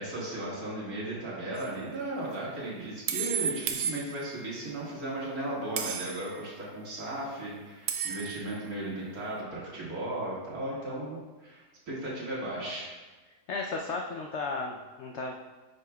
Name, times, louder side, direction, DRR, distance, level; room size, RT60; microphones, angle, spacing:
voice 1, 0.0-13.0, right 1 dB, 65° right, -6 dB, 2.3 m, -36 dB
sound 1, 1.6-1.7 3.1-4.5 5.8-6.4 7.9-8.6, right 7 dB, 80° right, 1.2 m, -33 dB
voice 2, 13.5-15.3, left 3 dB, 70° left, 1 dB, 0.6 m, -34 dB
9.2 x 5.6 x 2.3 m, 1.3 s
omnidirectional pair, 1.7 m